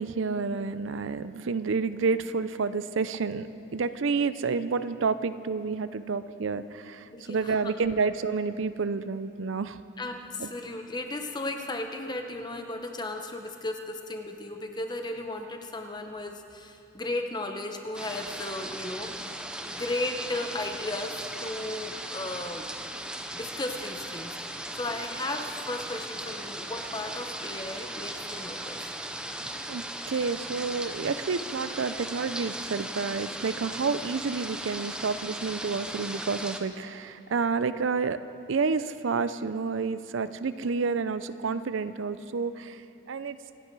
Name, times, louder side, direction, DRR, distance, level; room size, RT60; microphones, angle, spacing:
voice 1, 0.0-9.8 10.4-10.5 29.4-38.2 38.5-42.8 43.1-43.4, right 4 dB, 70° right, 13 dB, 0.5 m, -29 dB
voice 2, 7.1-7.7 10.0-19.3 19.6-28.9, left 2 dB, 20° left, 5 dB, 0.9 m, -35 dB
sound 1, 17.9-36.6, right 1 dB, 5° right, 0.6 m, -37 dB
26.5 x 9.8 x 4.7 m, 2.7 s
head